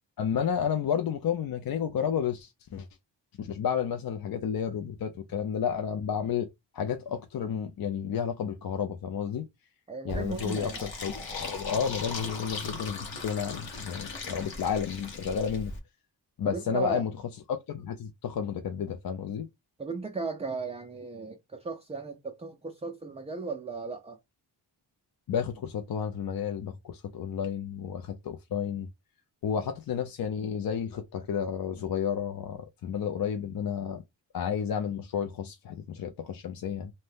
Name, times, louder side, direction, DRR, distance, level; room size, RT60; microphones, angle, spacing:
voice 1, 0.2-2.9 3.4-6.5 6.7-9.4 10.0-15.7 16.4-17.1 17.5-19.5 25.3-28.9 29.4-34.0 34.3-36.9, left 7 dB, 55° left, 0.4 m, -31 dB
voice 2, 9.9-10.8 14.2-14.5 16.4-17.1 19.8-24.2, right 4 dB, 15° right, 0.3 m, -36 dB
Fill (with liquid), 10.1-15.8, left 3 dB, 85° left, 1.0 m, -38 dB
2.7 x 2.1 x 3.3 m
wide cardioid pair, 85°, 44 cm